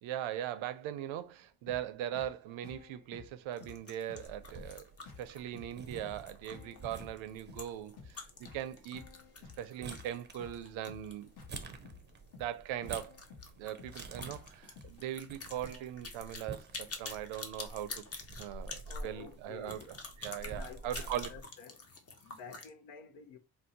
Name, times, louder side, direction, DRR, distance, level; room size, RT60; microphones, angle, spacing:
voice 1, 0.0-4.9 5.2-9.1 9.6-11.3 11.8-11.9 12.4-13.2 13.6-18.0 18.4-21.3, right 11 dB, 75° right, 0.5 m, -40 dB
sound 1, 1.7-15.1, left 4 dB, 55° left, 0.9 m, -54 dB
sound 2, 3.5-11.7 12.0-12.1 12.4-12.5 12.9-22.7, left 3 dB, 30° left, 0.7 m, -48 dB
sound 3, 4.3-21.4, right 3 dB, 25° right, 0.5 m, -49 dB
voice 2, 18.9-19.9 20.4-21.8 22.2-23.4, left 6 dB, 80° left, 0.7 m, -50 dB
2.7 x 2.0 x 3.9 m
cardioid pair, 75°, 48 cm